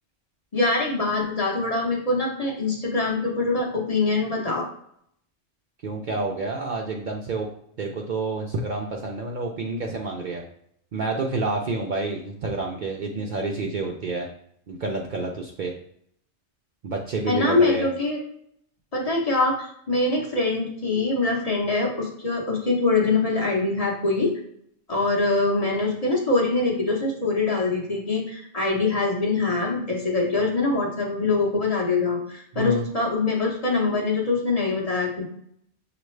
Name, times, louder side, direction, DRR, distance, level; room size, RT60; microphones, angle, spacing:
voice 1, 0.5-4.7 17.3-18.2 18.9-24.4 24.9-35.3, left 3 dB, 35° left, -2 dB, 0.9 m, -24 dB
voice 2, 5.8-7.5 7.8-10.4 10.9-14.3 14.7-15.7 16.8-17.9 32.5-32.8, right 3 dB, 60° right, 0 dB, 0.6 m, -28 dB
6.4 x 2.5 x 3.1 m, 0.70 s
omnidirectional pair, 1.1 m